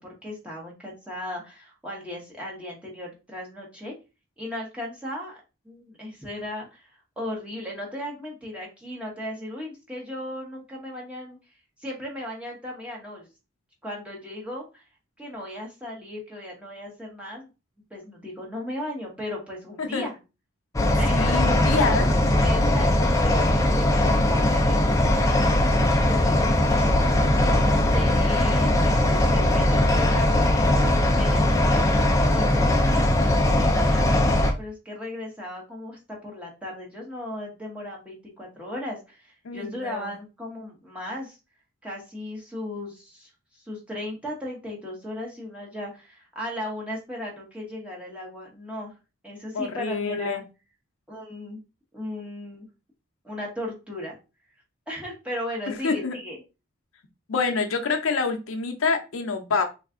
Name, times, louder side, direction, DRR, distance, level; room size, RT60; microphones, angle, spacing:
voice 1, 0.2-3.9 4.4-6.9 7.2-11.4 11.8-13.3 13.8-14.8 15.2-17.5 17.9-20.2 21.0-21.9 22.4-26.5 27.9-31.8 32.3-33.3 33.6-41.4 41.8-48.9 49.2-50.4 51.1-51.6 51.9-52.7 53.2-54.1 54.9-56.4, left 1 dB, 5° right, -3 dB, 1.0 m, -36 dB
sound 1, 20.7-34.5, left 1 dB, 15° left, 0.4 m, -20 dB
voice 2, 21.1-22.1 39.4-40.1 49.5-50.4 55.7-56.1 57.3-59.6, left 4 dB, 75° left, 5 dB, 0.6 m, -26 dB
3.4 x 2.4 x 3.6 m, 0.29 s
head